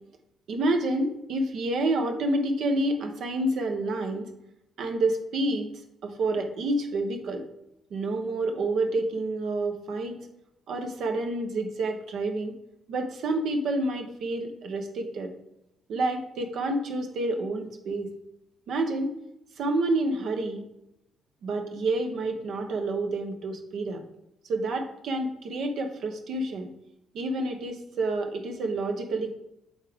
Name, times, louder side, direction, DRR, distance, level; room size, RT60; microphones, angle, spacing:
voice 1, 0.5-4.3 4.8-5.7 6.0-7.4 7.9-10.2 10.7-12.5 12.9-15.3 15.9-18.1 18.7-19.1 19.6-20.6 21.4-24.0 24.4-26.7 27.1-29.3, right 2 dB, 70° right, 5 dB, 0.9 m, -28 dB
8.1 x 3.6 x 3.5 m, 0.86 s
cardioid pair, 90°, 0 cm